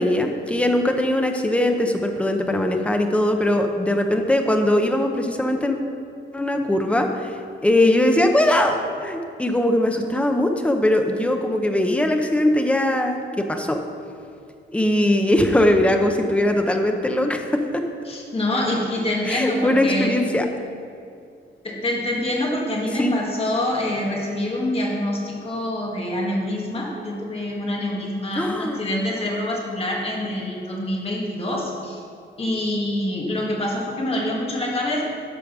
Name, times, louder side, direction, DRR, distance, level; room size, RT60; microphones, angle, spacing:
voice 1, 0.0-5.8 6.3-13.2 13.5-13.8 14.7-17.8 19.2-20.4 23.0-23.1 28.4-28.8, left 1 dB, 5° left, 4 dB, 0.7 m, -20 dB
voice 2, 18.1-20.2 21.6-32.0 32.4-35.0, left 1 dB, 30° left, -2 dB, 1.8 m, -26 dB
12.0 x 5.1 x 6.1 m, 2.4 s
wide cardioid pair, 165°, 21 cm